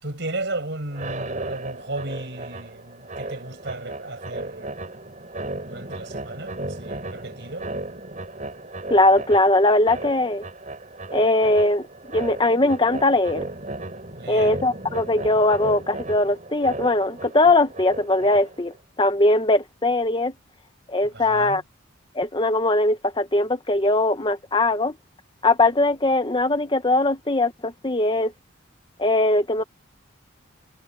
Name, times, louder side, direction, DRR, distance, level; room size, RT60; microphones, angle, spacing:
voice 1, 0.0-4.7 5.7-7.7 14.2-14.6 21.1-21.6, right 2 dB, 60° right, 5.4 m, -34 dB
sound 1, 0.9-18.8, right 2 dB, 40° right, 4.0 m, -35 dB
voice 2, 8.9-10.5 11.1-11.9 12.1-13.5 14.3-20.3 20.9-21.6 22.1-24.9 25.4-28.3 29.0-29.6, left 2 dB, 25° left, 0.9 m, -20 dB
head